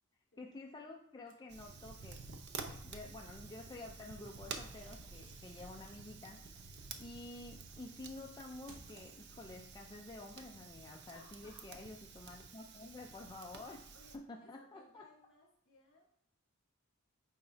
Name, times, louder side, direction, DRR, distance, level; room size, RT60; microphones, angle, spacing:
voice 1, 0.4-2.2 2.6-13.9 14.1-15.0, left 2 dB, 20° left, 1 dB, 0.4 m, -50 dB
sound 1, 1.3-2.4 4.3-9.7, right 2 dB, 70° right, 1.0 m, -66 dB
Fire, 1.5-14.2, right 4 dB, 55° right, 0.6 m, -50 dB
voice 2, 11.1-11.7 13.9-16.1, left 2 dB, 60° left, -3 dB, 2.6 m, -63 dB
9.1 x 3.5 x 3.3 m, 0.71 s
head